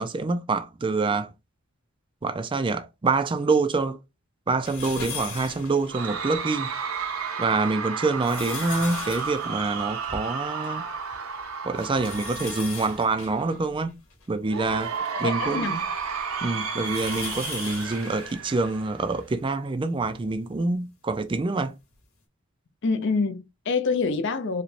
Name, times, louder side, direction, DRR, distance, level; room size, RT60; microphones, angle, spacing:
voice 1, 0.0-1.3 2.2-4.0 4.5-6.7 7.4-10.9 11.6-14.0 14.3-14.9 15.2-15.8 16.4-21.7, right 3 dB, 25° right, 0.4 m, -26 dB
sound 1, 4.6-6.5 7.0-7.1 7.8-10.8 11.1-11.2 11.7-14.8 15.4-19.3 20.0-20.1 21.4-21.5, left 5 dB, 85° left, 1.7 m, -39 dB
Cheering / Crowd, 5.9-13.2 14.5-19.2, right 5 dB, 85° right, 0.8 m, -32 dB
voice 2, 15.2-15.9 22.8-24.6, left 4 dB, 55° left, 0.5 m, -26 dB
4.9 x 2.2 x 3.2 m
head